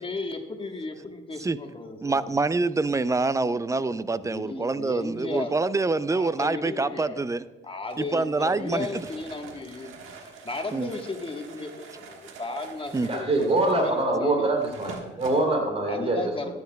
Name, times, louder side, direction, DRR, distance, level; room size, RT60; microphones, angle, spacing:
voice 1, 0.0-2.3 4.2-5.6 6.1-7.2 7.6-9.9 10.2-14.5 15.9-16.6, left 3 dB, 25° left, 4 dB, 1.3 m, -35 dB
voice 2, 2.0-7.4 8.0-9.1 10.7-10.9 12.9-13.1, right 3 dB, 15° right, 16 dB, 0.4 m, -26 dB
sound 1, 7.9-15.5, right 5 dB, 90° right, 1.4 m, -45 dB
voice 3, 13.1-16.2 16.4-16.5, right 2 dB, 30° right, 0 dB, 3.0 m, -24 dB
14.0 x 9.5 x 2.3 m, 1.2 s
cardioid pair, 90°, 20 cm